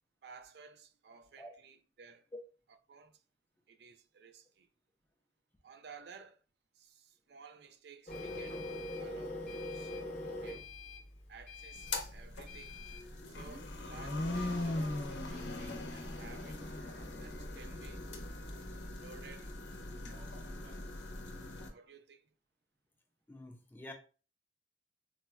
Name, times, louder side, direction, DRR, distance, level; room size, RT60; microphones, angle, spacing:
voice 1, 0.2-2.3 2.9-3.2 3.7-4.7 5.6-6.4 6.8-10.0 10.2-10.7 11.3-12.8 13.3-16.6 17.2-18.1 18.9-19.8 20.1-21.0 21.7-22.3, right 5 dB, 70° right, 0.4 m, -56 dB
Printer, 8.1-13.1, left 2 dB, 40° left, 0.6 m, -43 dB
sound 1, 11.8-21.7, left 2 dB, 90° left, 0.6 m, -40 dB
voice 2, 23.3-23.9, left 1 dB, 10° left, 0.3 m, -48 dB
4.1 x 2.1 x 2.2 m
head